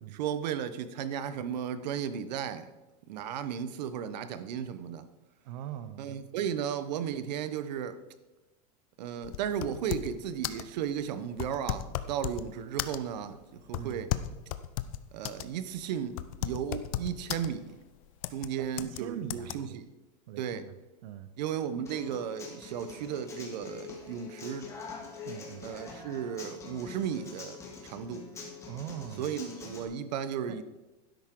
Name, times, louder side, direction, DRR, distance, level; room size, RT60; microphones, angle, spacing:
voice 1, 0.1-2.7 3.1-5.1 6.0-8.0 9.0-14.1 15.1-17.7 18.3-19.9 20.4-20.6 21.4-24.7 25.6-28.3 29.2-30.6, right 8 dB, 85° right, 0.9 m, -35 dB
voice 2, 5.4-6.2 13.8-14.1 18.6-19.8 20.3-20.7 21.0-21.3 25.2-25.7 28.7-29.3 30.5-30.6, right 10 dB, 55° right, 0.7 m, -41 dB
sound 1, 9.2-10.2 10.4-10.7 11.3-12.5 12.8-13.2 13.7-15.5 15.8-15.9 16.2-17.5 18.2-18.5 18.8-19.0 19.3-19.5, left 14 dB, 55° left, 0.6 m, -34 dB
Human voice / Acoustic guitar, 21.8-29.8, left 4 dB, 15° left, 1.7 m, -45 dB
12.5 x 10.5 x 3.7 m
supercardioid pair, 180°, 21 cm